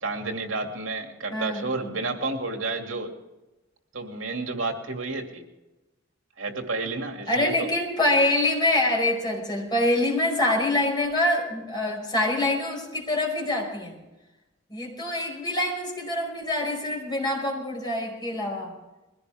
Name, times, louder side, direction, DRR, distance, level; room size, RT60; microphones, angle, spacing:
voice 1, 0.0-3.1 3.9-5.4 6.4-7.7, right 3 dB, 80° right, 3 dB, 2.5 m, -30 dB
voice 2, 1.3-1.6 7.3-14.0 14.7-18.7, left 1 dB, 20° left, 0 dB, 5.4 m, -25 dB
22.0 x 17.0 x 3.6 m, 1.0 s
head